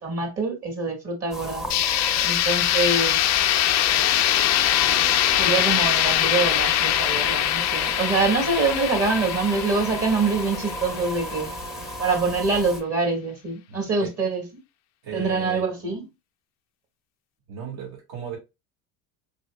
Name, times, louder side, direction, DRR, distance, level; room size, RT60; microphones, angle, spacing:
voice 1, 0.0-1.7 2.2-3.2 5.4-11.5 12.0-14.4 15.1-16.0, right 3 dB, 35° right, 1.8 m, -25 dB
sound 1, 1.3-12.8, equal, ahead, 0.7 m, -34 dB
sound 2, 1.7-11.5, left 12 dB, 40° left, 0.5 m, -23 dB
voice 2, 13.7-14.1 15.0-15.9 17.5-18.4, right 5 dB, 60° right, 2.1 m, -36 dB
4.0 x 3.7 x 2.2 m
supercardioid pair, 85°, 42 cm